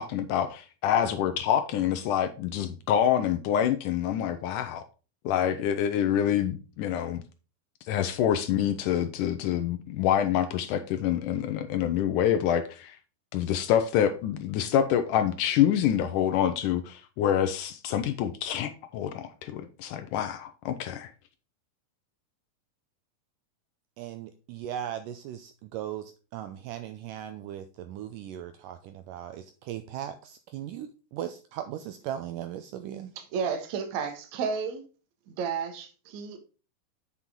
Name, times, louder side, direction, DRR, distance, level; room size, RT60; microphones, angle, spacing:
voice 1, 0.0-4.8 5.2-7.2 7.8-13.0 13.3-21.1, left 10 dB, 85° left, 1.8 m, -26 dB
voice 2, 24.0-33.1, right 11 dB, 85° right, 1.9 m, -38 dB
voice 3, 33.2-34.8 35.3-36.4, right 6 dB, 60° right, 2.2 m, -32 dB
8.2 x 6.1 x 3.7 m
omnidirectional pair, 4.4 m